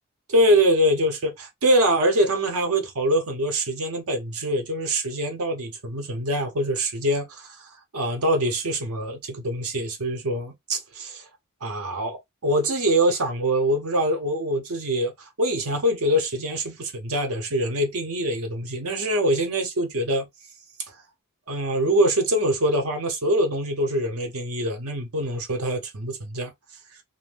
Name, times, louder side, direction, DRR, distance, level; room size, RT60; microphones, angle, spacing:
voice 1, 0.3-7.6 7.9-11.2 11.6-20.3 21.5-26.5, right 1 dB, 70° right, 0.8 m, -24 dB
2.5 x 2.1 x 3.2 m
head